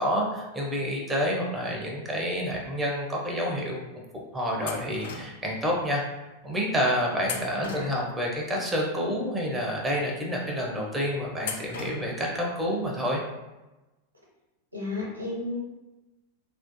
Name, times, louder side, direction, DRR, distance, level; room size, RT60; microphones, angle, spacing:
voice 1, 0.0-3.8 4.3-6.0 6.4-13.2, equal, 10° right, -2 dB, 0.5 m, -28 dB
sound 1, 4.7-5.5 7.2-8.3 11.4-12.3, left 5 dB, 55° left, 0.3 m, -38 dB
voice 2, 7.5-7.9 14.7-15.6, left 2 dB, 85° right, -4 dB, 0.7 m, -33 dB
2.4 x 2.0 x 2.7 m, 1.1 s
figure-of-eight pair, 90°, 0 cm